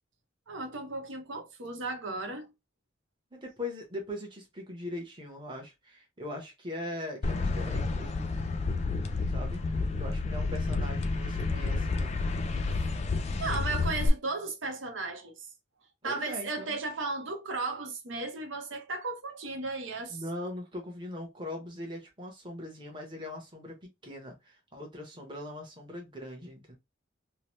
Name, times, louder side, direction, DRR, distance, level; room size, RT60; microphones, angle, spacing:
voice 1, 0.5-2.5 13.4-15.5 16.0-20.2, right 3 dB, 75° right, 0.8 m, -35 dB
voice 2, 3.3-8.3 9.3-9.6 10.0-12.1 16.0-16.8 20.1-26.7, left 1 dB, 25° right, 0.9 m, -41 dB
sound 1, 7.2-14.1, left 3 dB, 35° left, 0.3 m, -30 dB
2.8 x 2.1 x 3.0 m
head